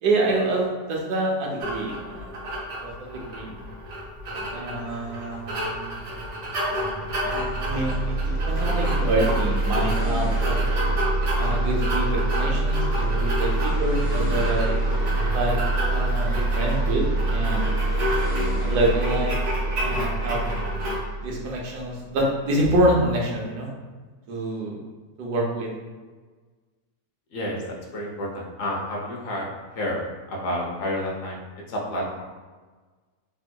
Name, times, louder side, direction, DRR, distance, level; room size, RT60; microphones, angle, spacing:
voice 1, 0.0-2.4 2.8-3.5 4.5-6.1 7.2-8.0 8.2-10.6 11.4-14.8 15.3-15.6 15.8-17.0 17.3-17.8 18.6-19.3 19.8-20.4 21.2-23.7 24.3-24.8 25.2-25.7, right 1 dB, 85° right, -1 dB, 1.2 m, -26 dB
sound 1, 1.6-21.0, equal, 65° right, 1.2 m, -31 dB
sound 2, 6.9-22.3, right 2 dB, 45° right, 0.8 m, -25 dB
voice 2, 27.3-29.5 29.7-31.4 31.7-32.2, left 1 dB, 65° left, -2 dB, 1.0 m, -30 dB
3.5 x 2.7 x 2.2 m, 1.4 s
omnidirectional pair, 1.7 m